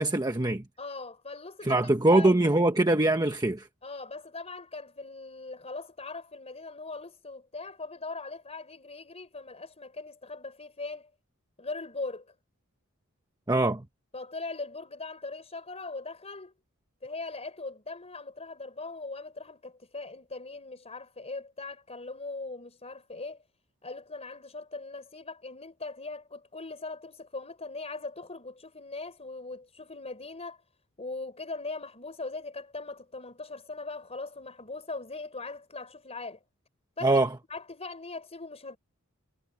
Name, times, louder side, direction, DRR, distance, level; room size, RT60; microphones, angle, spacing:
voice 1, 0.0-0.6 1.6-3.7 13.5-13.8 37.0-37.3, right 2 dB, 20° right, 1.3 m, -23 dB
voice 2, 0.8-2.4 3.8-11.1 11.6-12.3 14.1-16.5 17.0-23.4 23.8-30.6 31.0-36.4 37.0-37.2 37.5-38.8, left 3 dB, 30° left, 4.8 m, -40 dB
head